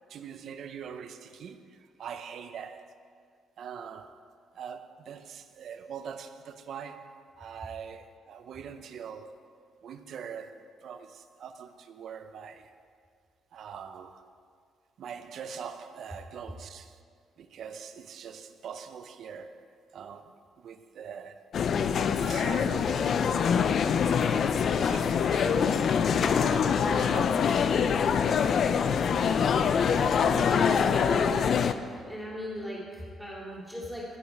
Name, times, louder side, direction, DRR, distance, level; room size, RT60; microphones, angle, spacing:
voice 1, 0.0-2.9 3.6-4.2 4.5-9.4 9.8-12.7 13.5-14.3 15.0-17.0 17.4-19.6 19.9-21.5 22.1-23.4 23.7-23.8 24.6-26.0 26.5-27.6, right 7 dB, 65° right, 0.6 m, -43 dB
sound 1, 21.5-31.7, left 7 dB, 60° left, 0.4 m, -24 dB
voice 2, 30.2-34.0, equal, ahead, 2.8 m, -38 dB
14.5 x 5.1 x 4.7 m
cardioid pair, 90°, 0 cm